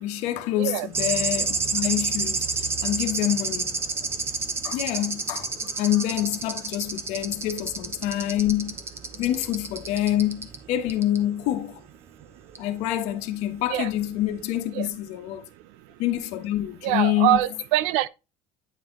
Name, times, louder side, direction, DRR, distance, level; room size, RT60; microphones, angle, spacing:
voice 1, 0.0-3.8 4.6-5.5 5.8-8.8 9.1-11.8 12.6-15.5 16.0-17.4, left 13 dB, 60° left, 1.2 m, -26 dB
sound 1, 0.9-10.6 10.9-11.2 12.6-12.7, right 4 dB, 20° right, 0.9 m, -30 dB
voice 2, 16.8-18.1, right 15 dB, 65° right, 0.6 m, -23 dB
9.1 x 4.5 x 3.8 m
cardioid pair, 165°, 14 cm